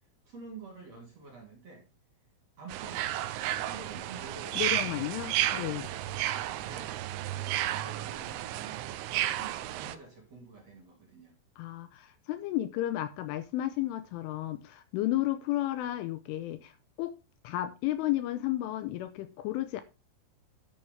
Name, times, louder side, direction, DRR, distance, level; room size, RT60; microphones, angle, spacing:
voice 1, 0.2-1.9 2.6-5.0 5.4-6.3 6.6-7.0 7.4-11.4, right 3 dB, 40° right, 3.0 m, -49 dB
sound 1, 2.7-10.0, right 14 dB, 90° right, 3.4 m, -32 dB
voice 2, 4.5-5.9 11.6-16.7 17.0-17.1 17.4-19.8, left 14 dB, 80° left, 3.2 m, -32 dB
11.0 x 9.5 x 3.5 m
omnidirectional pair, 6.0 m